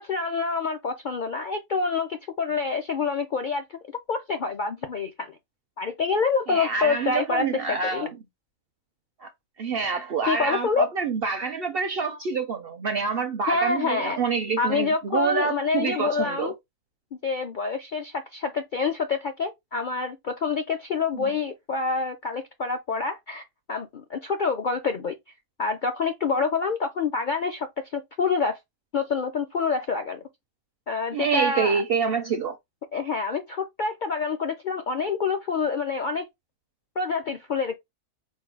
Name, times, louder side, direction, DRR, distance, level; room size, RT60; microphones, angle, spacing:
voice 1, 0.0-3.8 4.1-5.4 5.8-8.1 10.3-10.9 13.5-14.2 14.6-16.5 17.1-23.4 23.7-25.2 25.6-27.7 27.9-28.6 28.9-30.2 30.9-31.8 32.9-36.3 37.0-37.7, left 4 dB, 60° left, 0.5 m, -27 dB
voice 2, 6.5-8.1 9.2-9.3 9.6-16.5 21.2-21.3 31.1-32.6, right 5 dB, 65° right, 0.6 m, -27 dB
4.5 x 2.2 x 4.6 m
omnidirectional pair, 1.5 m